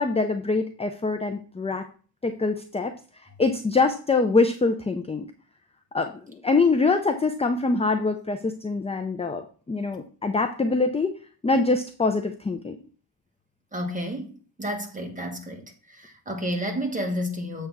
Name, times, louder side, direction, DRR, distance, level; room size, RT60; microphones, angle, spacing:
voice 1, 0.0-1.9 2.2-2.9 3.4-5.3 5.9-11.1 11.4-12.8, left 3 dB, 15° left, 0.5 m, -24 dB
voice 2, 13.7-14.3 14.6-15.6 15.9-17.7, equal, 20° right, 1.4 m, -30 dB
7.7 x 3.4 x 6.0 m
wide cardioid pair, 120°, 43 cm